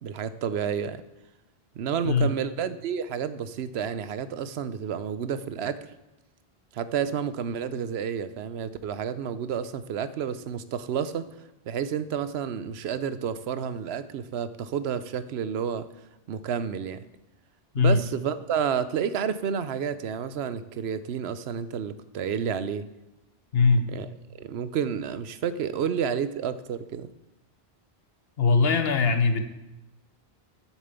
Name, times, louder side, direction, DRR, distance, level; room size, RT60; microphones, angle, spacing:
voice 1, 0.0-1.0 1.8-5.8 6.7-11.3 11.7-15.8 16.3-17.0 17.8-22.8 23.9-24.1 24.4-27.1, right 7 dB, 80° right, 14 dB, 0.9 m, -30 dB
voice 2, 23.5-23.9 28.4-29.4, left 4 dB, 70° left, 8 dB, 1.2 m, -21 dB
7.4 x 7.1 x 8.1 m, 0.96 s
omnidirectional pair, 1.1 m